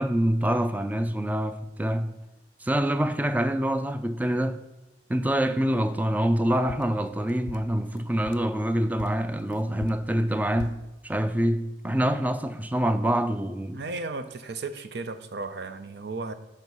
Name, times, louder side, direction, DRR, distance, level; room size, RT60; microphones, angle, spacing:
voice 1, 0.0-2.2 2.6-4.6 5.1-13.8, right 1 dB, 10° right, 0.4 m, -26 dB
sound 1, 6.7-8.6 9.0-10.9, left 7 dB, 85° left, 0.3 m, -43 dB
voice 2, 13.7-16.3, right 3 dB, 65° right, 0.6 m, -35 dB
6.3 x 5.2 x 5.4 m
head